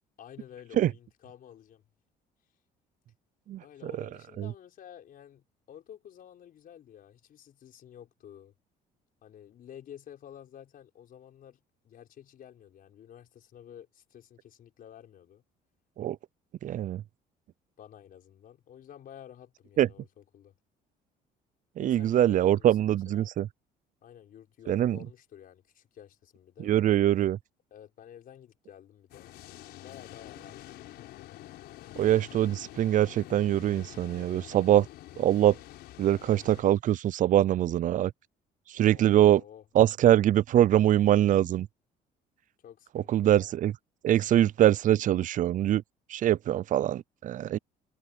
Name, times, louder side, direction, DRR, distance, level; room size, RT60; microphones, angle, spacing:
voice 1, 0.2-1.8 3.6-8.5 9.2-15.4 17.8-20.5 21.8-23.3 24.0-26.8 27.7-29.3 29.7-31.0 38.9-39.7 42.6-43.6, left 10 dB, 55° left, 5.3 m, -51 dB
voice 2, 16.6-17.0 19.8-19.9 21.8-23.5 24.7-25.0 26.6-27.4 32.0-34.9 35.2-35.6 36.0-38.1 38.7-39.4 39.8-41.7 43.1-43.7 44.0-45.8 46.1-47.6, right 12 dB, 50° right, 0.5 m, -23 dB
sound 1, 29.1-36.6, left 15 dB, 80° left, 4.9 m, -47 dB
cardioid pair, 110°, 17 cm